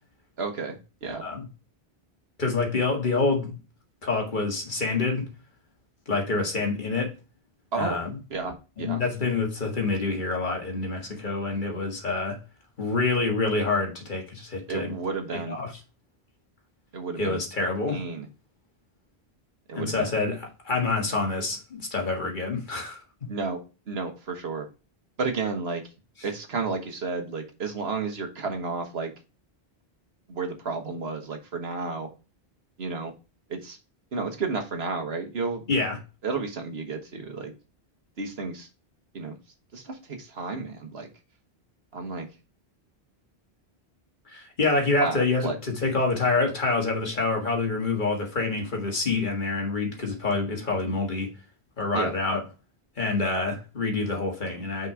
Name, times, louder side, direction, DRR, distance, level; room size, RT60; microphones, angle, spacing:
voice 1, 0.4-1.2 7.7-8.0 8.3-9.0 14.7-15.6 16.9-17.4 17.9-18.3 19.7-20.1 23.3-23.6 23.9-24.7 25.2-25.8 26.2-29.1 30.3-32.1 32.8-33.1 33.5-33.8 34.1-35.6 36.2-37.5 38.2-38.7 39.1-39.3 39.7-41.1 41.9-42.3 45.0-45.6 51.9-52.1, right 4 dB, 75° right, 1.5 m, -32 dB
voice 2, 2.4-3.5 4.0-5.3 6.1-7.1 7.8-8.1 8.8-12.4 12.8-15.0 15.5-15.7 17.2-18.0 19.7-23.0 35.7-36.0 44.3-51.3 51.8-52.4 53.0-54.9, left 3 dB, 50° left, 1.9 m, -27 dB
6.0 x 4.7 x 4.7 m
omnidirectional pair, 1.1 m